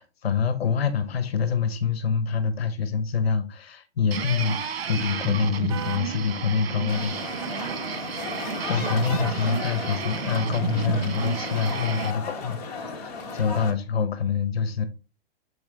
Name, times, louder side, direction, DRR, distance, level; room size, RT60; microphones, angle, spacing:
voice 1, 0.0-7.6 8.7-14.9, left 6 dB, 80° left, 1.1 m, -26 dB
sound 1, 4.1-12.1, right 7 dB, 75° right, 1.2 m, -31 dB
sound 2, 5.7-6.1 7.4-7.8 8.9-9.4, right 7 dB, 30° right, 0.4 m, -37 dB
sound 3, 6.9-13.7, left 4 dB, 40° left, 1.8 m, -35 dB
7.1 x 4.8 x 3.4 m
hypercardioid pair, 170°, 31 cm